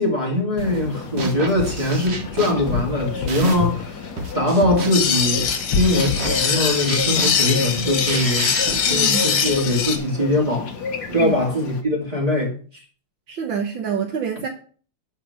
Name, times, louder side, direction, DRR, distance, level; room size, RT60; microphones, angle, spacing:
voice 1, 0.0-4.1 4.3-8.5 8.8-10.7 11.1-12.5, left 1 dB, 15° right, 2.4 m, -22 dB
sound 1, 0.6-11.8, left 4 dB, 55° left, 1.8 m, -30 dB
sound 2, 0.6-0.9 1.2-3.8 4.2-9.9, right 3 dB, 35° right, 1.4 m, -30 dB
sound 3, 4.9-10.0, left 6 dB, 85° left, 2.4 m, -22 dB
voice 2, 8.9-9.2 11.1-11.3 13.3-14.5, right 7 dB, 65° right, 1.7 m, -26 dB
11.0 x 4.5 x 6.5 m
omnidirectional pair, 2.3 m